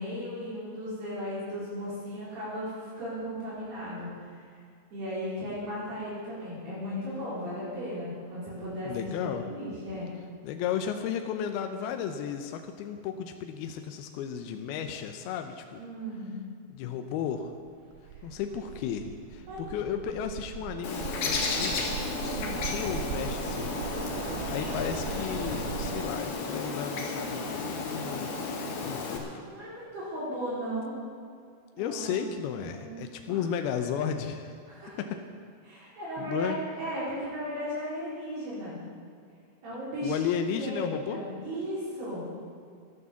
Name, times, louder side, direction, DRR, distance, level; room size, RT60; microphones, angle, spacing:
voice 1, 0.0-4.4 4.9-10.1 15.8-16.3 19.5-19.8 22.1-22.6 29.1-31.0 31.8-32.2 32.6-33.0 33.3-33.4 34.7-35.0 35.6-38.8 39.6-40.3 40.5-42.2, equal, 60° right, -8 dB, 6.2 m, -36 dB
voice 2, 8.8-9.4 10.4-15.8 16.7-17.5 18.2-21.9 22.2-28.3 28.8-29.5 31.8-34.5 35.0-35.2 36.2-36.6 40.0-41.2, left 8 dB, 80° left, 6 dB, 2.3 m, -34 dB
sound 1, 17.7-26.0, right 8 dB, 85° right, 3.0 m, -39 dB
Bird, 20.8-29.2, left 3 dB, 60° left, 3.6 m, -33 dB
13.5 x 12.5 x 7.0 m, 2.3 s
omnidirectional pair, 5.2 m